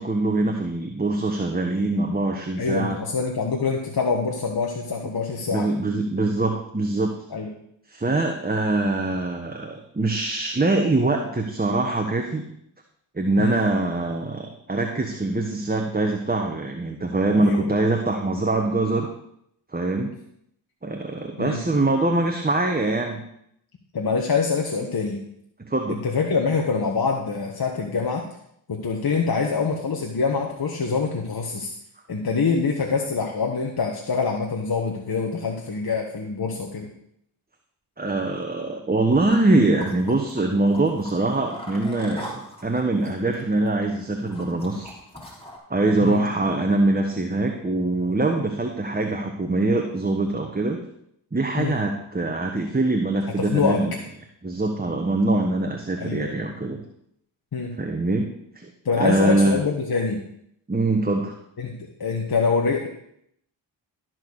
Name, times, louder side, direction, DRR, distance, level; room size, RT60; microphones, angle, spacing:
voice 1, 0.0-3.0 5.5-7.1 7.9-12.5 13.1-19.1 19.7-20.1 20.8-23.2 25.6-26.0 38.0-44.9 45.7-50.8 51.3-54.0 54.4-56.8 57.8-58.3 58.6-58.7 59.0-59.6 60.7-61.3, right 2 dB, 20° right, 3 dB, 1.4 m, -23 dB
voice 2, 2.6-5.7 7.3-7.5 13.4-13.6 17.4-17.6 21.4-21.6 23.9-25.2 25.9-28.2 28.7-31.7 32.1-36.9 46.0-46.2 51.6-51.7 53.4-53.8 56.0-56.4 57.5-57.7 58.8-60.2 61.6-61.7 62.0-62.9, left 5 dB, 45° left, 1 dB, 1.5 m, -25 dB
sound 1, 39.1-45.6, equal, 10° left, 3.3 m, -42 dB
13.0 x 4.6 x 6.5 m, 0.72 s
supercardioid pair, 45°, 49 cm